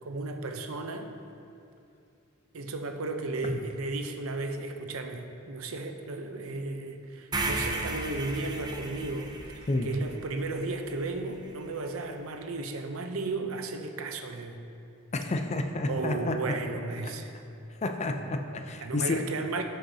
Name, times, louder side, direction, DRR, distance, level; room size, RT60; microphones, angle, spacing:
voice 1, 0.0-1.1 2.5-14.6 15.9-17.3 18.8-19.6, right 3 dB, 80° right, 6 dB, 0.7 m, -34 dB
sound 1, 7.3-11.5, right 2 dB, 20° right, 0.6 m, -35 dB
voice 2, 15.1-16.3 17.8-19.2, left 2 dB, 30° left, 5 dB, 0.5 m, -30 dB
12.5 x 6.5 x 2.8 m, 2.6 s
head